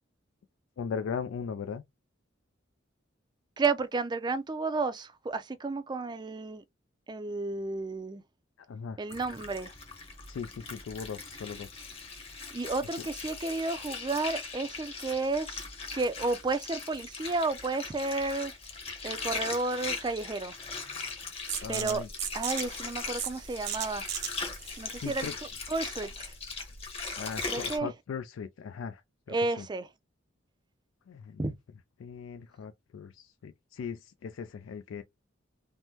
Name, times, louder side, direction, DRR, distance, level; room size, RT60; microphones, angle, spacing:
voice 1, 0.8-1.8 8.7-9.0 10.3-11.8 21.6-22.1 24.9-25.3 27.2-29.0 29.5-29.7 31.1-31.5 32.0-35.0, left 6 dB, 90° left, 0.3 m, -38 dB
voice 2, 3.6-6.6 7.1-8.2 9.0-9.7 12.5-15.6 15.9-18.5 19.0-20.5 21.7-22.0 22.3-24.1 24.8-25.3 25.7-26.3 27.5-27.9 29.3-29.9 31.4-31.5, right 3 dB, 20° right, 0.4 m, -32 dB
Water, 9.1-27.8, left 4 dB, 30° left, 0.8 m, -40 dB
sound 1, 21.5-27.0, right 8 dB, 55° right, 0.8 m, -38 dB
3.4 x 2.0 x 2.8 m
head